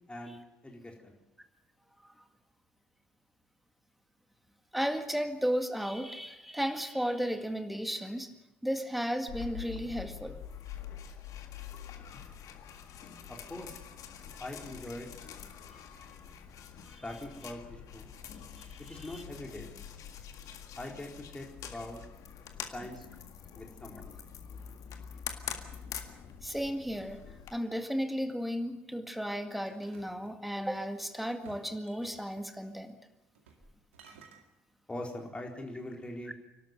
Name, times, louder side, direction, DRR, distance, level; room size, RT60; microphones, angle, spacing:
voice 1, 0.6-1.2 13.3-13.7 14.4-15.2 17.0-18.1 18.8-19.7 20.8-22.0 22.7-23.0 23.5-24.1 34.9-36.3, left 1 dB, 15° left, 0 dB, 4.2 m, -42 dB
voice 2, 4.7-8.3 8.6-10.4 16.9-17.0 18.7-19.2 26.4-27.2 27.5-32.9, equal, ahead, 7 dB, 1.9 m, -34 dB
sound 1, 9.3-27.5, left 8 dB, 55° left, 1.8 m, -45 dB
sound 2, 29.7-30.9 31.4-32.4 33.3-33.7 33.9-34.4, right 5 dB, 80° right, 2.1 m, -57 dB
28.5 x 12.5 x 7.9 m, 0.93 s
figure-of-eight pair, 50°, 7 cm